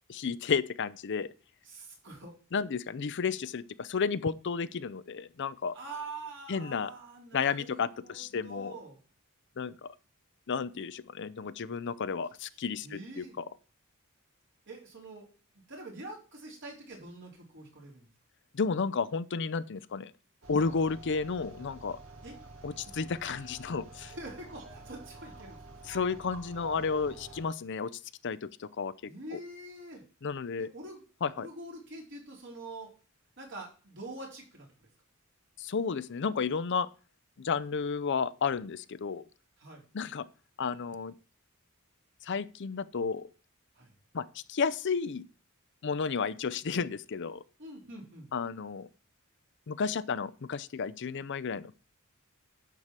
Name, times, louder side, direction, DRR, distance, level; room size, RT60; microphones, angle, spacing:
voice 1, 0.1-1.3 2.5-5.8 6.5-6.9 7.3-8.8 9.6-9.9 10.5-13.4 18.5-20.1 20.5-22.0 22.6-24.1 25.8-27.9 28.2-29.4 30.2-30.7 31.2-31.5 35.6-36.9 37.4-39.3 39.9-40.3 40.6-41.1 42.2-43.3 44.1-45.3 45.8-47.4 48.3-48.9 49.7-51.8, left 5 dB, 55° left, 0.5 m, -32 dB
voice 2, 1.6-2.3 5.7-9.0 12.8-13.4 14.7-15.3 15.7-18.1 22.2-22.4 24.1-25.6 29.1-30.0 30.6-31.0 31.3-32.9 33.4-34.7 39.6-39.8 43.8-43.9 47.6-48.3, right 2 dB, 60° right, 4.2 m, -45 dB
sound 1, 20.4-27.4, right 3 dB, 80° right, 2.2 m, -48 dB
10.5 x 4.8 x 7.4 m
head